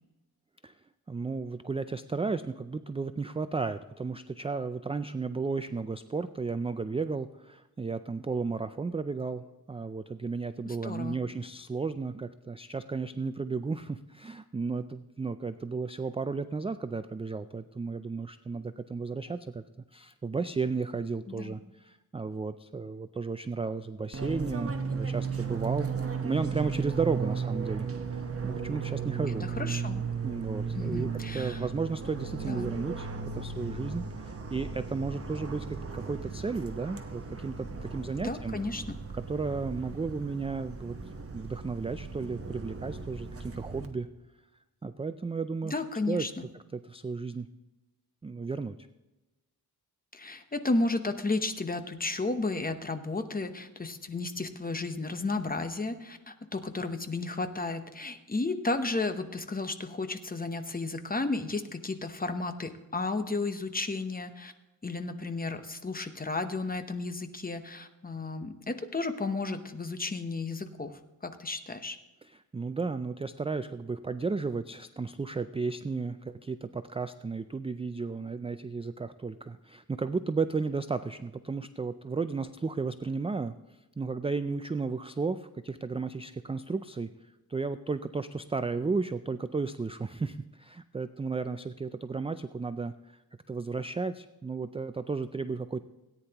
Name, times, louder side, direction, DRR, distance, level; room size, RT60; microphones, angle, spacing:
voice 1, 1.1-19.6 19.9-29.5 30.2-31.1 31.3-33.1 33.3-38.6 39.1-41.0 41.3-44.1 44.8-45.8 46.1-46.3 46.7-47.5 48.2-48.8 72.3-87.1 87.5-93.2 93.5-95.8, right 4 dB, 15° right, 11 dB, 0.3 m, -34 dB
voice 2, 10.6-11.2 21.3-21.6 29.4-30.0 30.7-31.6 32.4-32.8 38.2-39.0 45.6-46.4 50.1-64.5 64.8-72.0, left 3 dB, 25° left, 8 dB, 0.9 m, -33 dB
Fixed-wing aircraft airplane, 24.1-43.9, right 5 dB, 35° right, 1.1 m, -36 dB
17.5 x 9.7 x 2.9 m, 1.0 s
wide cardioid pair, 105°, 38 cm